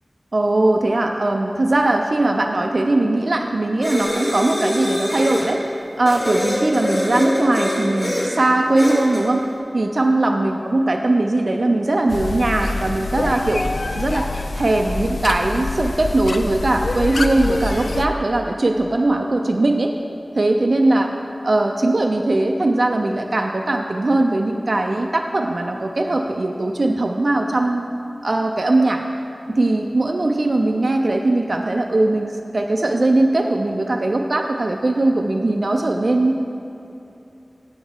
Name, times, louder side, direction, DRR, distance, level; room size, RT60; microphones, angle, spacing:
voice 1, 0.3-5.6 6.0-9.5 9.7-14.3 14.5-19.9 20.4-21.1 21.4-27.9 28.2-29.0 29.6-36.5, right 2 dB, 65° right, 3 dB, 0.4 m, -20 dB
sound 1, 3.8-5.5 6.1-8.3 8.8-9.3, left 1 dB, 65° left, 2.0 m, -24 dB
sound 2, 12.1-18.1, left 2 dB, 85° left, 0.3 m, -26 dB
8.6 x 7.1 x 3.7 m, 2.9 s
wide cardioid pair, 60°, 0 cm